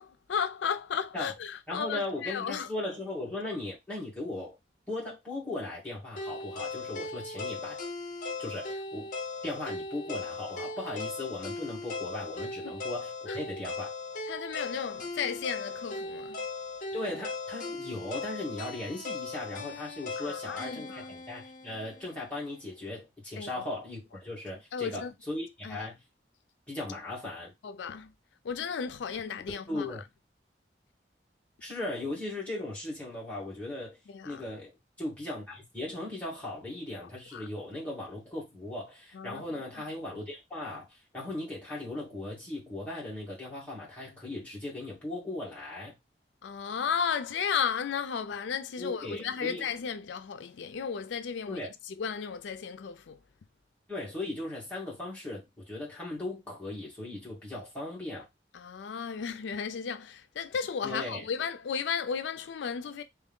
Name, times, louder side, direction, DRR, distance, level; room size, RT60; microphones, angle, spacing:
voice 1, 0.0-2.7 12.6-12.7 13.3-13.4 14.3-16.4 20.2-21.1 23.4-23.5 24.7-25.1 25.6-25.8 27.6-28.1 28.4-29.9 34.1-34.4 37.3-37.5 39.1-39.4 46.4-53.2 58.5-63.0, left 6 dB, 85° left, 0.4 m, -34 dB
voice 2, 1.7-4.6 4.9-7.8 8.4-9.1 9.4-13.9 16.9-26.0 26.7-27.5 29.7-30.0 31.6-34.0 34.2-46.0 48.8-49.6 51.5-51.7 53.9-58.3 60.8-61.3, left 2 dB, 5° left, 1.8 m, -38 dB
sound 1, 6.2-22.3, left 3 dB, 45° left, 0.7 m, -38 dB
3.4 x 3.0 x 3.5 m
head